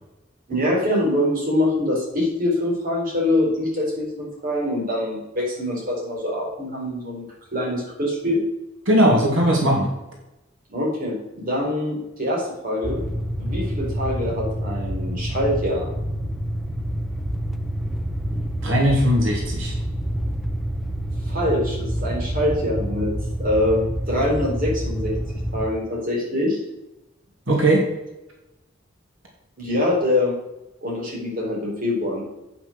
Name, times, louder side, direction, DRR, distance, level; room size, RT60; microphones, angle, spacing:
voice 1, 0.5-7.2 7.5-8.4 10.7-13.0 13.4-15.9 21.3-23.1 23.4-25.1 25.5-26.6 29.6-30.4 30.8-32.2, left 1 dB, 45° right, -3 dB, 4.0 m, -24 dB
voice 2, 8.9-9.9 18.6-19.7 27.5-27.9, right 1 dB, 85° right, -1 dB, 2.4 m, -18 dB
sound 1, 12.8-25.7, equal, ahead, 0.6 m, -27 dB
8.7 x 6.0 x 6.3 m, 0.96 s
head